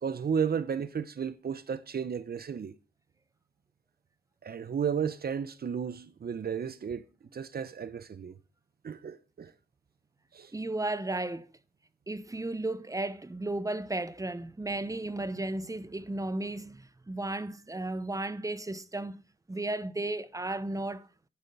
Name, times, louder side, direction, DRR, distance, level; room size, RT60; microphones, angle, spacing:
voice 1, 0.0-2.8 4.4-7.0 7.3-8.4 8.8-9.5 10.3-10.5, right 7 dB, 70° right, 0.7 m, -33 dB
voice 2, 10.5-11.5 12.1-19.2 19.5-21.1, right 2 dB, 20° right, 0.9 m, -34 dB
10.5 x 9.2 x 5.4 m
wide cardioid pair, 85°, 17 cm